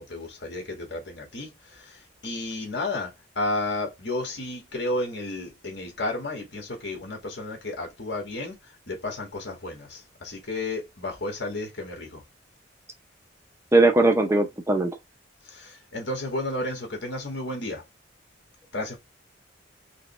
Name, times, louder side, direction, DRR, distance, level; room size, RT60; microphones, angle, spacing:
voice 1, 0.0-8.6 8.9-12.2 15.4-17.8 18.7-19.0, left 2 dB, 60° left, 1.8 m, -32 dB
voice 2, 13.7-14.9, right 2 dB, 15° right, 0.7 m, -19 dB
5.1 x 2.4 x 3.2 m
head